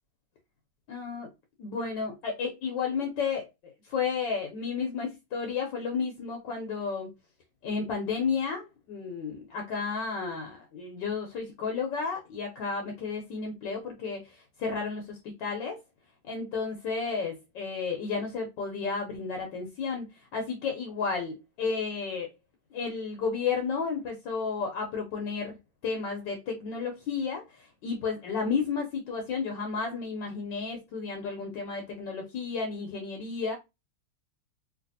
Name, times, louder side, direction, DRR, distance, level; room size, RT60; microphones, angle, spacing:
voice 1, 0.9-1.3 1.6-7.1 7.6-15.8 16.2-20.0 20.3-22.3 22.7-25.5 25.8-33.6, left 5 dB, 70° left, 1.3 m, -32 dB
3.2 x 2.8 x 2.6 m
omnidirectional pair, 2.2 m